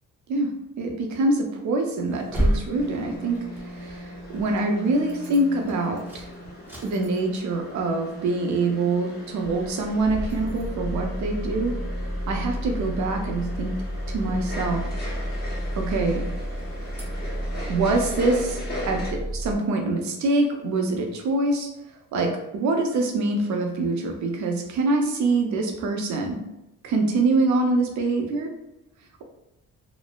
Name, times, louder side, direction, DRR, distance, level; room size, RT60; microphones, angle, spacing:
voice 1, 0.8-3.4 3.7-6.3 6.8-11.7 12.3-13.7 14.1-14.8 15.8-16.3 17.7-21.7 22.1-26.4 26.8-28.5, right 2 dB, 70° right, 3 dB, 0.6 m, -25 dB
sound 1, 2.1-4.6 5.0-5.4 5.7-7.5 7.9-8.0 8.2-8.3 8.9-9.1 9.4-19.6, equal, 5° right, 0.7 m, -31 dB
sound 2, 2.7-19.1, left 1 dB, 30° left, 1.0 m, -38 dB
3.1 x 2.0 x 2.3 m, 0.89 s
cardioid pair, 90°, 30 cm